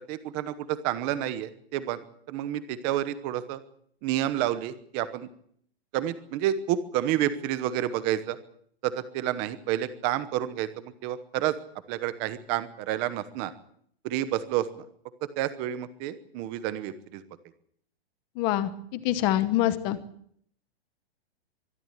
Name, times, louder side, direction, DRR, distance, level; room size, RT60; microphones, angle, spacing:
voice 1, 0.1-2.0 2.3-3.6 4.0-5.3 5.9-8.4 8.8-11.5 11.9-13.5 14.0-14.7 15.4-17.2, right 12 dB, 15° right, 13 dB, 0.9 m, -29 dB
voice 2, 18.4-20.0, left 13 dB, 15° left, 13 dB, 0.9 m, -25 dB
23.5 x 12.5 x 9.7 m, 0.64 s
hypercardioid pair, 180°, 32 cm